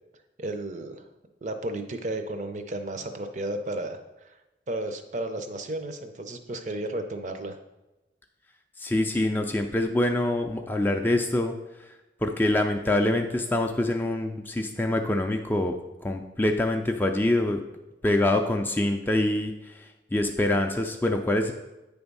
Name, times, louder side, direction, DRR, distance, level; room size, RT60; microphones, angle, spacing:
voice 1, 0.4-1.1 1.4-4.4 4.7-7.6, right 1 dB, 40° right, 7 dB, 0.6 m, -33 dB
voice 2, 8.8-11.5 12.2-15.8 16.0-17.6 18.0-21.5, left 1 dB, 10° left, 4 dB, 0.3 m, -25 dB
8.6 x 3.5 x 5.3 m, 1.0 s
head